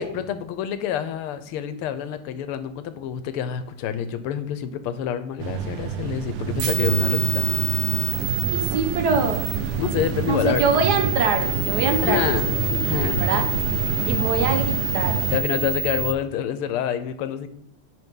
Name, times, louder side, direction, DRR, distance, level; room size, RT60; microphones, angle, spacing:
voice 1, 0.0-7.6 9.8-10.6 12.0-13.2 15.3-17.5, left 9 dB, 90° left, 11 dB, 1.6 m, -27 dB
sound 1, 5.4-15.4, right 6 dB, 85° right, 1.7 m, -27 dB
sound 2, 6.6-16.1, right 5 dB, 70° right, 0.8 m, -28 dB
voice 2, 8.5-9.4 10.3-12.3 13.2-13.4 14.0-15.1, right 4 dB, 55° right, 5 dB, 1.5 m, -23 dB
sound 3, 11.3-14.9, left 4 dB, 50° left, 1.6 m, -35 dB
10.5 x 5.6 x 3.8 m, 0.66 s
omnidirectional pair, 2.4 m